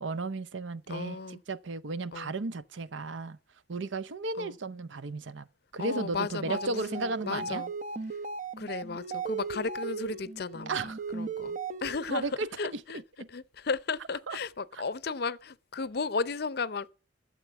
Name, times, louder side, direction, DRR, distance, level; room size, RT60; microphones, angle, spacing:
voice 1, 0.0-3.4 3.7-5.5 5.7-7.6 10.7-11.0 12.1-12.8 13.2-13.3 14.3-14.4, right 3 dB, 70° right, 0.7 m, -34 dB
voice 2, 0.9-1.4 2.1-2.3 4.4-4.6 5.8-7.7 8.6-12.3 12.6-13.0 13.3-16.9, left 4 dB, 50° left, 0.6 m, -34 dB
sound 1, 6.4-12.2, right 5 dB, 40° right, 0.7 m, -37 dB
12.5 x 7.6 x 6.9 m
head